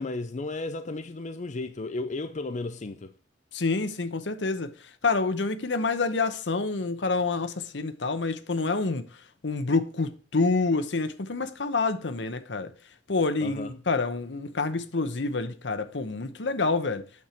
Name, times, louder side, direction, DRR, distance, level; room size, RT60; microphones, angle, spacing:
voice 1, 0.0-3.1 13.4-13.7, left 2 dB, 40° left, 0.5 m, -34 dB
voice 2, 3.5-9.1 9.4-12.7 13.1-17.1, left 3 dB, 75° left, 0.9 m, -27 dB
8.5 x 6.7 x 4.4 m
head